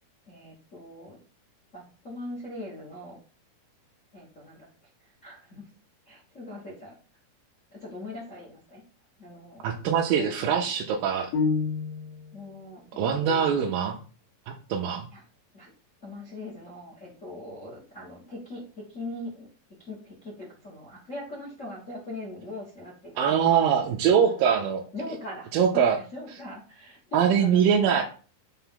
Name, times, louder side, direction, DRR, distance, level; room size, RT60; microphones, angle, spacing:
voice 1, 0.3-1.2 1.7-3.2 4.1-4.9 5.2-5.7 6.1-6.9 7.7-8.8 9.2-10.7 12.3-13.7 15.1-15.2 15.5-15.7 16.0-19.5 19.8-23.5 24.3-24.4 24.9-28.0, left 1 dB, 45° left, -4 dB, 0.9 m, -41 dB
voice 2, 9.6-11.3 13.0-14.0 14.5-15.1 23.2-24.8 25.5-26.0 27.1-28.0, right 7 dB, 80° right, 0 dB, 2.4 m, -23 dB
sound 1, 11.3-12.4, left 4 dB, 75° left, 1.6 m, -27 dB
6.8 x 2.6 x 5.6 m, 0.38 s
omnidirectional pair, 4.1 m